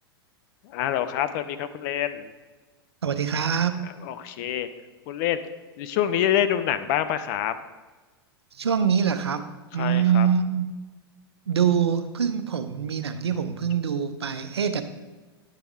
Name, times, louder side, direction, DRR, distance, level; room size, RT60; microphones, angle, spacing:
voice 1, 0.6-2.3 4.0-4.7 5.1-5.4 5.8-7.5 9.8-10.3, left 11 dB, 50° left, 12 dB, 0.6 m, -26 dB
voice 2, 3.0-3.8 8.5-9.5 9.7-10.7 11.5-14.8, right 7 dB, 90° right, 9 dB, 0.6 m, -24 dB
10.0 x 3.5 x 4.7 m, 1.3 s
hypercardioid pair, 105°, 13 cm